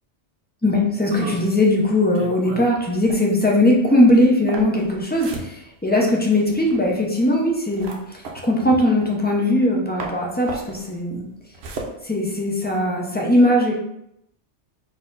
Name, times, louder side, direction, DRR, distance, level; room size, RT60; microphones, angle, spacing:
voice 1, 0.6-11.3 12.0-13.7, left 1 dB, 10° left, -2 dB, 0.5 m, -19 dB
sound 1, 1.1-9.7 10.0-12.9, right 3 dB, 60° right, 0.9 m, -37 dB
4.3 x 2.8 x 3.9 m, 0.81 s
omnidirectional pair, 1.2 m